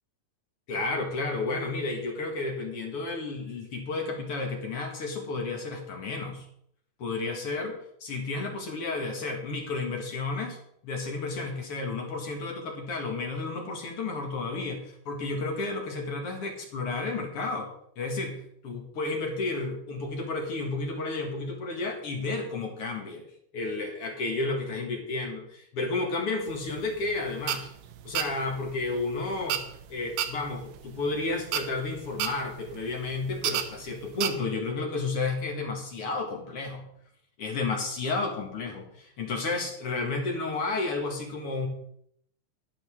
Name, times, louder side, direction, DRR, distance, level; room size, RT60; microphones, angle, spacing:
voice 1, 0.7-6.5 7.0-10.6 10.8-17.7 18.0-23.2 23.5-27.7 28.0-29.6 29.9-36.8 37.4-41.7, left 3 dB, 45° left, 2 dB, 2.6 m, -32 dB
sound 1, 26.5-34.3, right 10 dB, 85° right, 2.6 m, -33 dB
12.0 x 11.5 x 3.8 m, 0.69 s
omnidirectional pair, 4.0 m